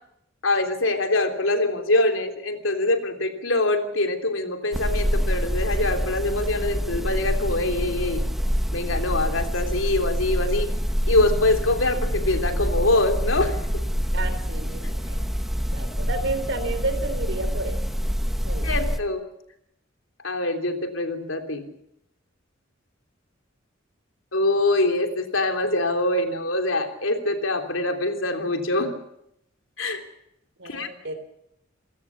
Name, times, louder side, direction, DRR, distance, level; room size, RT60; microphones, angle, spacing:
voice 1, 0.4-8.2 8.7-10.7 11.1-13.6 18.6-19.2 20.2-21.6 24.3-28.9 29.8-30.0 30.6-30.9, left 2 dB, 90° left, 6 dB, 3.3 m, -24 dB
sound 1, 4.7-19.0, equal, ahead, 1.4 m, -26 dB
voice 2, 14.1-15.2 15.7-17.8 18.4-18.7 30.6-31.1, right 2 dB, 65° right, 10 dB, 3.8 m, -31 dB
27.5 x 17.0 x 7.2 m, 0.78 s
head